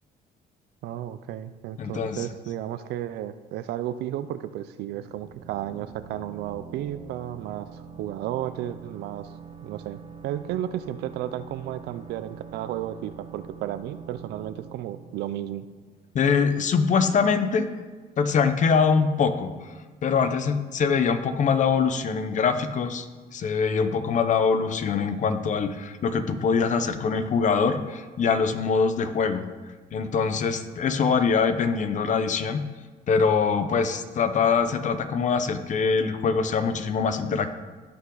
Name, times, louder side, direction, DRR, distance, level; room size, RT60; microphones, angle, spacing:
voice 1, 0.8-9.3 9.6-15.7, right 12 dB, 75° right, 12 dB, 0.5 m, -33 dB
voice 2, 1.8-2.2 16.1-17.7 18.2-19.5 20.0-23.1 23.3-29.4 29.9-32.6 33.1-37.5, left 5 dB, 45° left, 10 dB, 0.9 m, -23 dB
sound 1, 4.9-16.4, right 6 dB, 30° right, 1.0 m, -45 dB
16.5 x 5.8 x 3.9 m, 1.4 s
cardioid pair, 110°, 17 cm